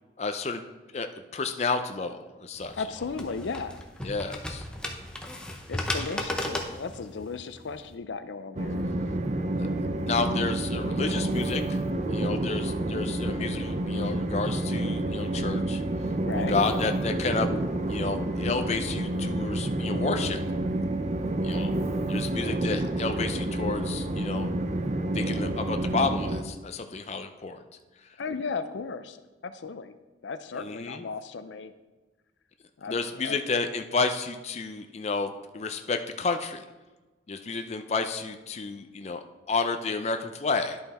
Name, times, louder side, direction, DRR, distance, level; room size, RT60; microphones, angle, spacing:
voice 1, 0.2-0.6 0.9-2.8 4.0-4.6 10.0-11.8 12.1-15.8 16.4-17.5 17.9-20.4 21.4-21.7 22.1-24.5 25.1-27.6 30.6-31.0 32.9-36.6 37.3-40.8, left 4 dB, 35° left, 7 dB, 0.5 m, -31 dB
sound 1, 2.5-7.9, left 1 dB, 5° left, 0.7 m, -35 dB
voice 2, 2.7-3.8 5.7-8.8 16.2-16.6 22.4-22.7 28.2-29.9 30.2-31.7 32.8-33.4, left 4 dB, 85° left, 10 dB, 0.5 m, -36 dB
Train, 8.6-26.4, right 1 dB, 40° right, 0.6 m, -29 dB
10.5 x 5.7 x 4.2 m, 1.2 s
head